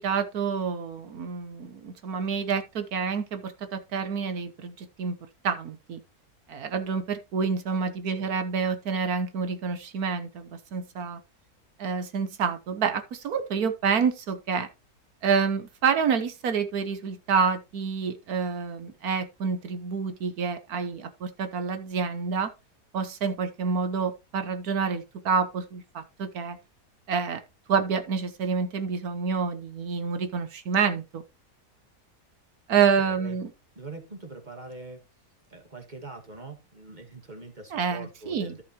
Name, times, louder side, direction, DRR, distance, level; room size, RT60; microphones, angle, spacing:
voice 1, 0.0-5.2 5.4-6.0 6.5-11.2 11.8-14.7 15.2-22.5 22.9-26.6 27.1-27.4 27.7-31.2 32.7-33.5 37.7-38.6, right 6 dB, 70° right, 1.4 m, -28 dB
voice 2, 33.0-33.4 33.8-35.0 35.5-38.6, right 3 dB, 30° right, 1.9 m, -43 dB
14.0 x 5.7 x 2.9 m
omnidirectional pair, 1.7 m